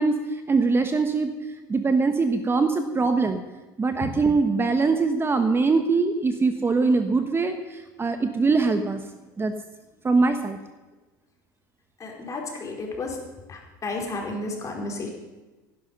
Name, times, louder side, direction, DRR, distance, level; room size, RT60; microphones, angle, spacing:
voice 1, 0.0-1.3 1.7-3.4 3.8-9.0 9.4-9.5 10.0-10.6, right 4 dB, 20° right, 7 dB, 1.3 m, -22 dB
voice 2, 12.0-13.2 13.5-15.1, left 3 dB, 30° left, 0 dB, 4.6 m, -32 dB
17.0 x 11.5 x 5.4 m, 1.2 s
hypercardioid pair, 80°, 10 cm